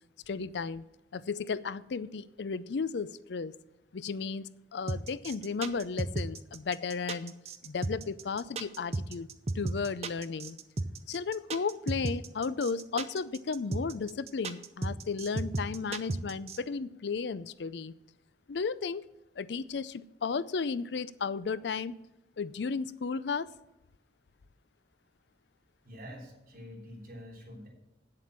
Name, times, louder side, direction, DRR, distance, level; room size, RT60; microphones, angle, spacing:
voice 1, 0.3-0.8 1.1-3.5 3.9-7.3 7.6-9.3 9.5-10.6 11.1-17.9 18.5-19.1 19.4-22.0 22.4-23.5, left 5 dB, 80° left, 16 dB, 0.5 m, -34 dB
sound 1, 4.9-16.6, right 2 dB, 35° right, 0.6 m, -34 dB
voice 2, 25.8-27.7, equal, 55° right, -2 dB, 3.5 m, -46 dB
8.6 x 7.5 x 7.4 m, 0.94 s
head